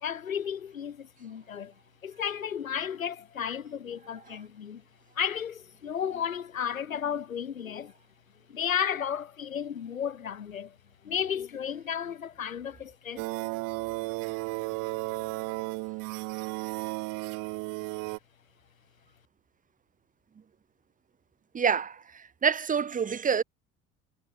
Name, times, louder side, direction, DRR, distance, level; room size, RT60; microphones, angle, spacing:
voice 1, 0.0-1.7 2.0-4.8 5.2-7.9 8.5-10.8 11.0-13.6, left 8 dB, 80° left, 2.2 m, -33 dB
sound 1, 13.2-18.2, right 27 dB, 55° right, 1.7 m, -34 dB
voice 2, 21.5-23.4, right 7 dB, 20° right, 1.2 m, -27 dB
figure-of-eight pair, 65°, 40 cm